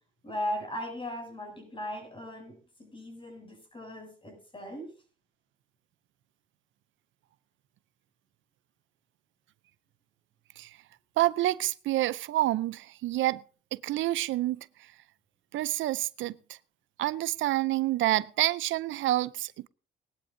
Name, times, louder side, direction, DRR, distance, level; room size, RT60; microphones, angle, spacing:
voice 1, 0.2-4.9, equal, 25° left, 7.2 m, -38 dB
voice 2, 11.2-13.4 13.7-14.7 15.5-16.6 17.0-19.7, right 15 dB, 75° right, 0.5 m, -28 dB
19.5 x 11.5 x 2.6 m
cardioid pair, 90°, 20 cm